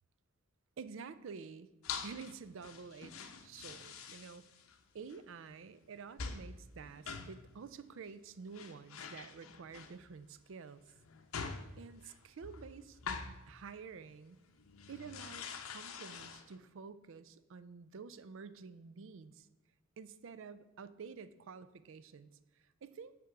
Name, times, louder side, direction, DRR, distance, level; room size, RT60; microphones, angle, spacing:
voice 1, 0.8-1.7 2.0-4.5 4.9-10.8 11.8-13.0 13.5-14.4 14.9-19.5 20.0-22.4 22.8-23.1, right 5 dB, 65° right, 14 dB, 0.4 m, -50 dB
sound 1, 1.8-2.4 2.6-4.8 5.1-5.2 6.2-6.5 6.8-7.5 8.2-8.3 8.5-10.2 10.9-13.4 13.9-14.1 14.5-16.6, left 5 dB, 85° left, 0.7 m, -45 dB
8.4 x 3.8 x 5.8 m, 1.1 s
head